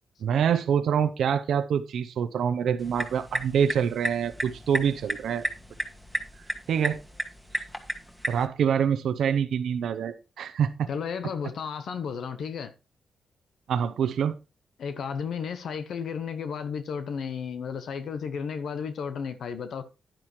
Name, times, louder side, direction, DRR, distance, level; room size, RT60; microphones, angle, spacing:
voice 1, 0.2-5.5 6.7-7.0 8.3-10.9 13.7-14.3, right 8 dB, 80° right, 0.7 m, -26 dB
sound 1, 2.8-8.5, equal, 10° left, 2.0 m, -34 dB
voice 2, 10.9-12.7 14.8-19.8, left 6 dB, 75° left, 0.9 m, -33 dB
10.5 x 10.0 x 3.1 m
cardioid pair, 60°, 0 cm